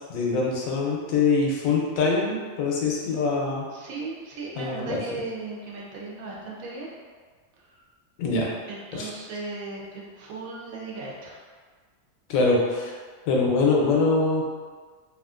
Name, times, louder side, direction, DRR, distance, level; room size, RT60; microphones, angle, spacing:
voice 1, 0.0-3.7 4.6-5.0 8.2-8.5 9.0-9.1 12.3-12.9 13.3-14.4, left 3 dB, 80° left, -2 dB, 1.0 m, -23 dB
voice 2, 3.7-6.9 7.6-7.8 8.7-11.4, right 3 dB, 85° right, -4 dB, 1.0 m, -37 dB
2.7 x 2.4 x 2.4 m, 1.5 s
omnidirectional pair, 1.4 m